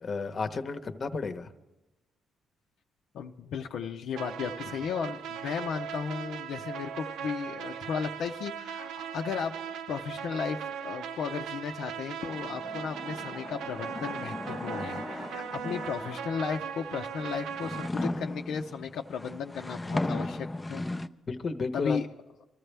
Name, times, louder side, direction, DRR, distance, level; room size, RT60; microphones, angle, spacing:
voice 1, 0.0-1.5 21.3-22.0, left 4 dB, 40° left, 8 dB, 1.0 m, -32 dB
voice 2, 3.1-9.6 9.9-20.8 21.7-22.1, left 6 dB, 75° left, 2 dB, 0.7 m, -35 dB
sound 1, 4.2-17.9, right 8 dB, 85° right, 0.6 m, -39 dB
sound 2, 12.3-16.6 17.2-21.1, left 2 dB, 15° left, 0.6 m, -36 dB
24.0 x 14.0 x 3.4 m, 1.0 s
cardioid pair, 90°, 0 cm